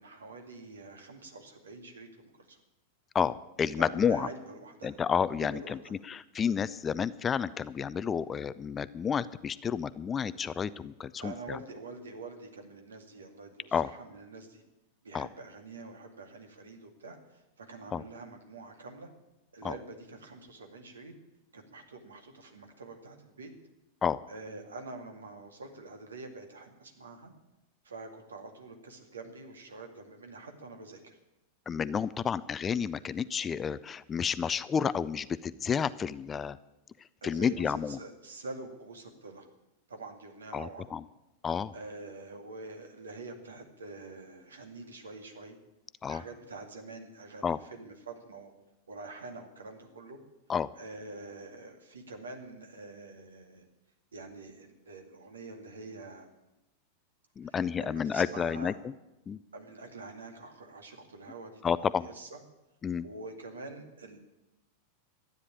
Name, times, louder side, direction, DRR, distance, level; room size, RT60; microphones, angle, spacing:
voice 1, 0.0-2.6 3.8-5.0 5.4-5.9 11.2-14.6 15.0-19.1 19.5-21.1 21.5-23.5 24.3-27.3 27.8-31.2 37.2-39.5 39.9-40.9 41.7-45.6 46.0-48.5 48.9-50.2 50.8-53.6 54.1-56.3 57.4-58.8 59.5-62.4 63.0-64.2, right 3 dB, 70° right, 5 dB, 2.1 m, -46 dB
voice 2, 3.1-4.3 4.8-5.8 6.1-11.6 13.7-13.9 15.1-15.3 17.9-18.0 19.6-19.7 24.0-24.2 31.7-36.6 37.2-38.0 40.5-41.0 41.4-41.7 46.0-46.2 47.4-47.6 50.5-50.7 57.4-58.7 59.3-59.4 61.6-62.1 62.8-63.0, left 7 dB, 20° left, 17 dB, 0.4 m, -30 dB
13.0 x 9.6 x 8.7 m, 0.97 s
figure-of-eight pair, 90°, 0 cm